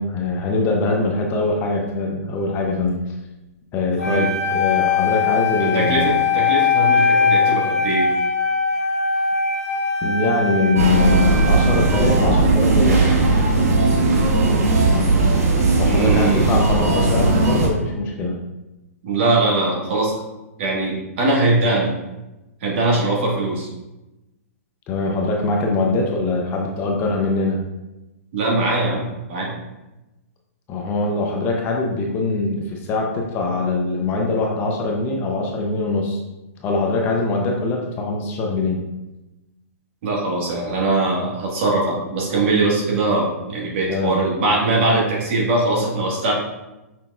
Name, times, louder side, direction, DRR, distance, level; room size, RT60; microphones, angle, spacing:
voice 1, 0.0-3.0 3.7-6.2 10.0-13.2 15.7-18.4 24.9-27.6 30.7-36.2 36.6-38.9 43.9-44.1, left 3 dB, 25° left, 0 dB, 0.6 m, -22 dB
Wind instrument woodwind instrument, 4.0-12.3, left 5 dB, 85° left, 1.0 m, -21 dB
voice 2, 4.0-4.3 5.6-8.1 15.8-16.4 19.0-20.1 20.6-21.9 22.6-23.7 28.3-29.6 40.0-46.3, right 2 dB, 50° right, -3 dB, 1.5 m, -21 dB
sound 1, 10.8-17.7, right 2 dB, 80° right, 1.0 m, -17 dB
6.0 x 3.4 x 2.3 m, 1.0 s
hypercardioid pair, 145°, 8 cm